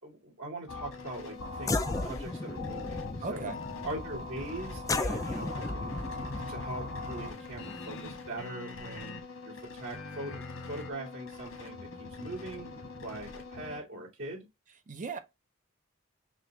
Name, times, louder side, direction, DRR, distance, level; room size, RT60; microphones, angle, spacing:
voice 1, 0.0-3.5 3.8-9.2 9.4-12.7 13.0-14.5, right 1 dB, 75° right, 2.6 m, -41 dB
sound 1, 0.7-13.8, left 3 dB, 85° left, 1.5 m, -41 dB
sound 2, 1.2-1.3 1.6-8.4, left 2 dB, 15° left, 0.4 m, -36 dB
voice 2, 3.2-3.6 14.9-15.2, right 4 dB, 40° right, 0.6 m, -36 dB
6.1 x 2.4 x 3.2 m
head